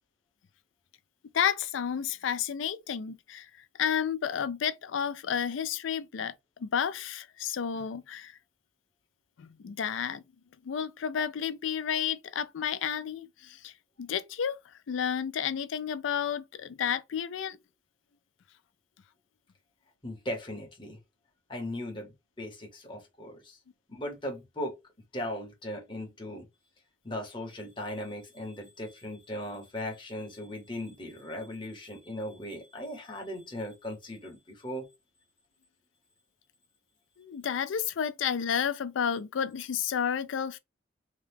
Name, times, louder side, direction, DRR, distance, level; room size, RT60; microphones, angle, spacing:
voice 1, 1.3-3.5 3.8-6.3 6.6-8.3 9.4-10.2 10.6-14.6 14.9-17.6 37.2-40.6, left 8 dB, 80° left, 0.4 m, -31 dB
voice 2, 20.0-21.0 21.5-23.6 23.9-24.8 25.1-26.5 27.0-34.9, left 1 dB, 25° left, 0.9 m, -38 dB
2.8 x 2.3 x 3.4 m
head